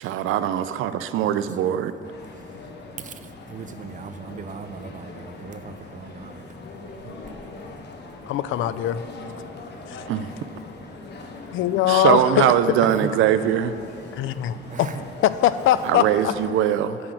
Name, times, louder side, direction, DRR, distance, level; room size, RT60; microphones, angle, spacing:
voice 1, 0.0-1.9 7.0-7.1 10.1-10.3 11.9-13.8 15.8-17.0, right 10 dB, 85° right, 13 dB, 0.4 m, -21 dB
sound 1, 2.0-16.5, left 3 dB, 60° left, 1.1 m, -41 dB
voice 2, 2.3-6.9 7.2-7.9 9.4-10.0 12.8-13.1 14.1-14.3 14.7-15.0, right 5 dB, 40° right, 9 dB, 0.6 m, -40 dB
voice 3, 8.3-9.0 9.9-10.0 11.5-12.5 14.1-14.9 15.2-16.3, left 12 dB, 80° left, 14 dB, 0.4 m, -22 dB
7.6 x 5.9 x 7.8 m, 2.8 s
cardioid pair, 90°, 20 cm